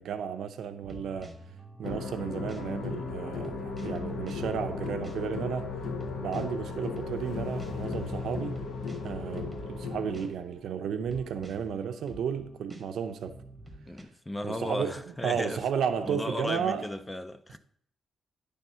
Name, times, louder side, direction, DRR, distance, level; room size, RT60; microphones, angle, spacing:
voice 1, 0.0-1.3 1.8-5.7 6.2-8.6 9.0-13.3 14.4-16.9, right 7 dB, 80° right, 0.6 m, -33 dB
sound 1, 0.6-14.0, right 1 dB, 5° right, 1.1 m, -49 dB
sound 2, 1.8-10.3, left 4 dB, 75° left, 1.2 m, -36 dB
voice 2, 13.9-15.6 16.0-17.6, left 1 dB, 10° left, 0.4 m, -35 dB
10.5 x 3.5 x 5.5 m
cardioid pair, 125°, 0 cm